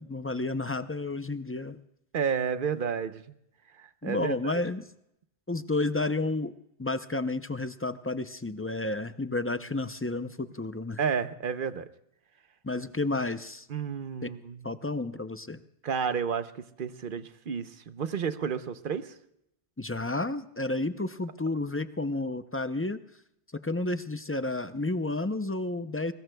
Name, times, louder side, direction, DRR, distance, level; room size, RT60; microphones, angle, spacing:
voice 1, 0.0-1.8 4.0-4.9 5.5-6.5 6.8-11.0 12.6-13.7 14.2-14.3 14.6-15.6 19.8-23.0 23.5-26.1, left 2 dB, 20° left, 11 dB, 0.3 m, -31 dB
voice 2, 2.1-3.4 3.8-4.6 11.0-11.9 13.7-14.7 15.8-19.1, right 6 dB, 60° right, 11 dB, 0.9 m, -31 dB
24.0 x 20.0 x 2.2 m, 0.79 s
omnidirectional pair, 1.1 m